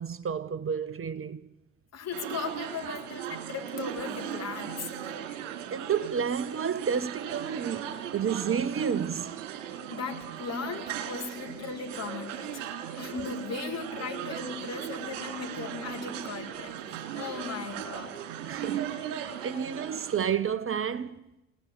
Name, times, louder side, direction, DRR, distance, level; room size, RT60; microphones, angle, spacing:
voice 1, 0.0-1.4 5.7-9.3 18.4-21.2, right 7 dB, 35° right, 1.5 m, -31 dB
voice 2, 1.9-4.9 9.9-12.6 13.0-18.1, left 6 dB, 45° left, 5.4 m, -37 dB
sound 1, 2.1-20.3, right 10 dB, 75° right, 3.9 m, -38 dB
27.5 x 19.0 x 9.6 m
hypercardioid pair, 70°, 37 cm